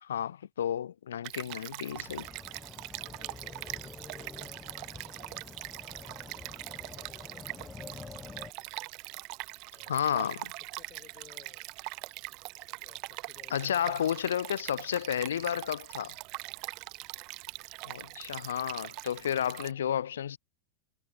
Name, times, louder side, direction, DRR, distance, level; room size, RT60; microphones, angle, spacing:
voice 1, 0.0-2.3 9.9-10.5 13.5-16.1 17.8-20.4, left 9 dB, 65° left, 0.6 m, -32 dB
Stream, 1.2-19.7, right 27 dB, 40° right, 0.4 m, -42 dB
sound 1, 1.9-8.5, left 4 dB, 15° left, 1.1 m, -48 dB
voice 2, 3.0-5.5 5.9-8.8 9.7-10.1 10.7-11.7 12.5-13.8 14.2-14.3 16.4-16.9, left 11 dB, 30° left, 6.2 m, -59 dB
figure-of-eight pair, 90°, 0 cm